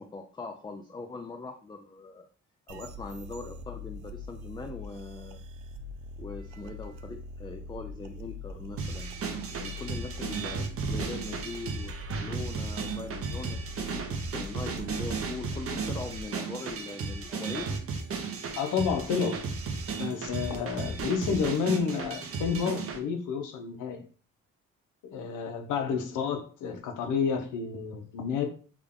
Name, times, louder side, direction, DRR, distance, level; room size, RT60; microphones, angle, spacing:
voice 1, 0.0-2.3 2.7-5.4 6.2-9.1 9.6-17.7, left 3 dB, 15° left, 4 dB, 0.4 m, -41 dB
sound 1, 2.7-16.2, left 2 dB, 80° right, 0.5 m, -43 dB
sound 2, 8.8-23.0, right 4 dB, 50° right, 0.8 m, -34 dB
voice 2, 18.6-19.4 20.0-24.0 25.1-28.5, left 6 dB, 90° left, 5 dB, 0.8 m, -30 dB
3.6 x 2.2 x 3.6 m, 0.40 s
cardioid pair, 90°, 30 cm